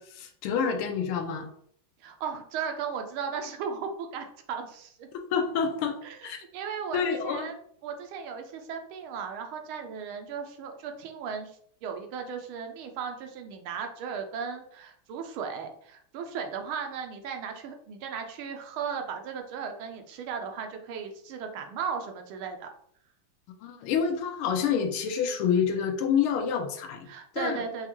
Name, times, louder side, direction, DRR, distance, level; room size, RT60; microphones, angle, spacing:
voice 1, 0.0-1.5 5.3-6.0 6.2-6.4 6.9-7.5 23.6-27.1 27.3-27.6, left 7 dB, 80° left, 5 dB, 1.5 m, -28 dB
voice 2, 2.0-5.1 6.0-6.3 6.5-7.5 7.8-22.7 27.1-27.9, right 6 dB, 75° right, 5 dB, 1.4 m, -36 dB
5.6 x 2.4 x 3.0 m, 0.63 s
omnidirectional pair, 2.4 m